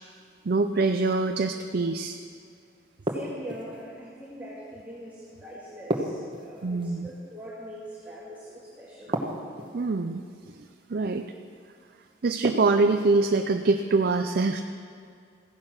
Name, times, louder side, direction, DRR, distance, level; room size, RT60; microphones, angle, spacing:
voice 1, 0.4-2.2 6.6-7.1 9.7-10.2 10.9-11.3 12.2-14.6, right 3 dB, 55° right, 6 dB, 0.5 m, -24 dB
voice 2, 3.0-9.2, equal, 10° right, -8 dB, 2.2 m, -42 dB
sound 1, 3.1-3.8 5.9-6.9 9.1-9.9 12.4-13.1, right 1 dB, 25° right, 1.2 m, -31 dB
15.5 x 10.5 x 6.2 m, 2.3 s
head